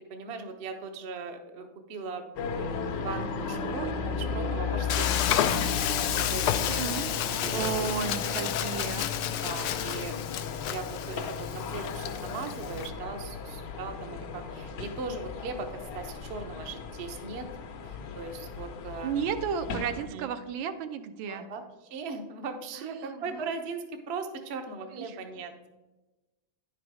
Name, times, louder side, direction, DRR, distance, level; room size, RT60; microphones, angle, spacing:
voice 1, 0.1-5.5 5.9-6.8 7.4-7.7 8.2-8.5 9.4-10.1 10.4-17.5 17.8-19.3 20.1-20.3 21.3-25.5, right 4 dB, 55° right, 5 dB, 0.7 m, -39 dB
sound 1, 2.4-20.1, left 5 dB, 65° left, 1.4 m, -35 dB
Frying (food), 4.9-12.9, left 11 dB, 85° left, 0.8 m, -31 dB
voice 2, 6.8-7.1 7.5-9.1 19.0-21.5 22.8-23.2 24.9-25.1, right 7 dB, 80° right, 9 dB, 1.4 m, -33 dB
10.0 x 5.0 x 4.8 m, 1.1 s
omnidirectional pair, 2.2 m